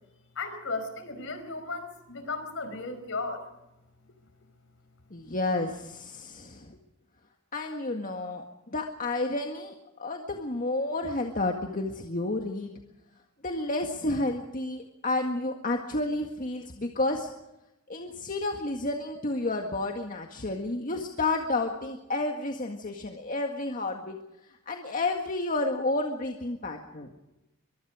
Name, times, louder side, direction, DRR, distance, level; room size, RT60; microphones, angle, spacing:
voice 1, 0.3-3.4, left 3 dB, 65° left, 8 dB, 5.2 m, -35 dB
voice 2, 5.1-6.8 7.5-8.4 8.7-9.7 10.0-12.7 13.4-17.3 17.9-24.2 24.6-27.1, left 2 dB, 40° left, 3 dB, 1.8 m, -31 dB
23.5 x 23.5 x 5.0 m, 0.94 s
head